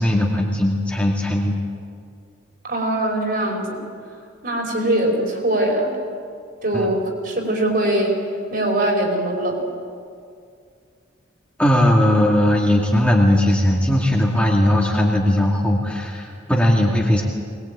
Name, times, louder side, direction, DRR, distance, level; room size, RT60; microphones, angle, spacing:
voice 1, 0.0-1.6 6.7-6.9 11.6-17.2, left 1 dB, 5° left, -2 dB, 2.3 m, -18 dB
voice 2, 2.6-3.8 4.4-6.0 6.6-8.1 8.5-9.7, right 1 dB, 50° right, 1 dB, 4.8 m, -22 dB
22.0 x 20.5 x 8.8 m, 2.2 s
head